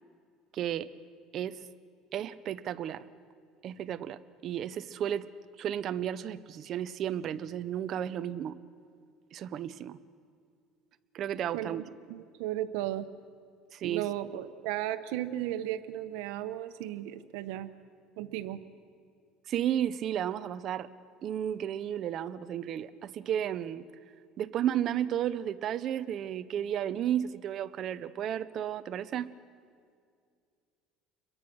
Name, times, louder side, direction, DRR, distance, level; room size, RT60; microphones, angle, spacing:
voice 1, 0.5-0.9 1.3-1.6 2.1-3.0 3.6-5.3 5.6-8.6 9.3-10.0 11.1-11.8 13.7-14.1 19.5-20.9 21.2-23.9 24.4-29.3, right 10 dB, 45° right, 12 dB, 0.8 m, -33 dB
voice 2, 11.5-13.0 13.8-17.7 18.2-18.6, right 13 dB, 80° right, 8 dB, 1.3 m, -35 dB
29.5 x 22.5 x 6.4 m, 2.2 s
cardioid pair, 140°, 0 cm